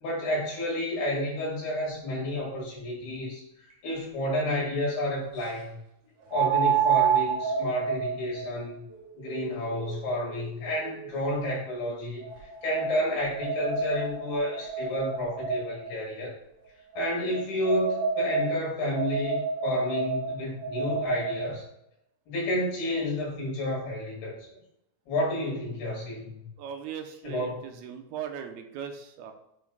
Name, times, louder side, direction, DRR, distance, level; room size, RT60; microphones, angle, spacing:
voice 1, 0.0-5.8 6.3-8.8 9.2-16.4 17.0-21.6 22.3-24.4 25.1-26.4 27.3-27.6, left 1 dB, 80° left, -5 dB, 3.9 m, -31 dB
sound 1, 3.7-3.8 6.3-11.5 12.2-15.9 16.9-21.5, right 6 dB, 60° right, 2.2 m, -30 dB
voice 2, 26.6-29.3, right 8 dB, 85° right, 5 dB, 2.6 m, -39 dB
10.5 x 5.9 x 2.2 m, 0.81 s
omnidirectional pair, 4.5 m